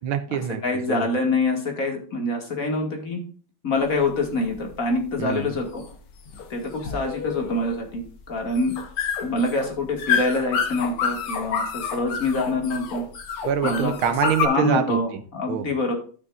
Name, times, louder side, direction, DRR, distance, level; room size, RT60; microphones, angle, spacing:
voice 1, 0.0-0.6 0.9-1.1 5.2-5.6 13.4-15.2 15.5-15.7, right 9 dB, 75° right, 1.6 m, -25 dB
voice 2, 0.6-3.2 3.6-5.8 6.5-8.7 9.2-13.0 13.6-13.9 14.4-15.9, left 2 dB, 40° left, 2.5 m, -25 dB
sound 1, 3.8-14.5, left 6 dB, 85° left, 2.3 m, -29 dB
14.0 x 6.1 x 2.6 m
omnidirectional pair, 2.4 m